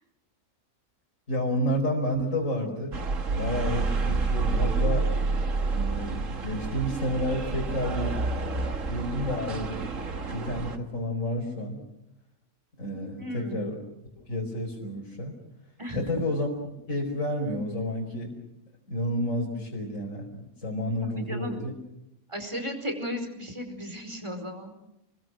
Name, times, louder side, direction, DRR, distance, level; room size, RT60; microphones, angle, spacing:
voice 1, 1.3-3.0 3.4-5.1 5.7-8.2 8.7-9.8 10.3-11.8 12.8-13.8 14.2-15.4 15.9-16.5 16.9-18.3 18.9-21.7, left 1 dB, 60° left, -2 dB, 5.2 m, -30 dB
sound 1, 2.9-10.8, right 3 dB, 60° right, 2.0 m, -29 dB
voice 2, 13.2-13.6 15.8-16.0 21.1-21.6 22.3-24.7, equal, 20° right, 6 dB, 4.8 m, -35 dB
30.0 x 22.0 x 6.3 m, 0.84 s
omnidirectional pair, 1.5 m